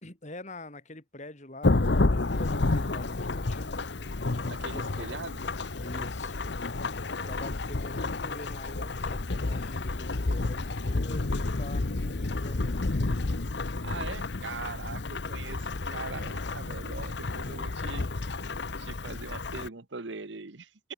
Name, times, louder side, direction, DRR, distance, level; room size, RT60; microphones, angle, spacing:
voice 1, 0.0-3.7 4.7-4.9 5.8-6.4 7.2-13.0, left 1 dB, 40° left, 3.9 m, -45 dB
Thunderstorm / Rain, 1.6-19.7, left 2 dB, 65° left, 0.9 m, -30 dB
voice 2, 4.5-5.4 13.8-18.1 18.8-20.9, right 4 dB, 75° right, 1.2 m, -41 dB
head